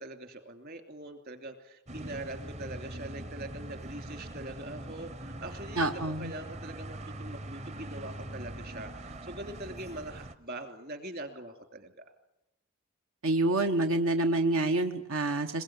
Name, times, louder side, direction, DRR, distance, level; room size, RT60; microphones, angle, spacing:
voice 1, 0.0-5.9 6.2-12.0, right 1 dB, 50° right, 7 dB, 2.8 m, -43 dB
sound 1, 1.9-10.4, right 1 dB, 30° right, 0.8 m, -42 dB
voice 2, 5.8-6.3 13.2-15.6, right 2 dB, 85° right, 6 dB, 1.2 m, -27 dB
22.0 x 22.0 x 8.9 m, 0.89 s
head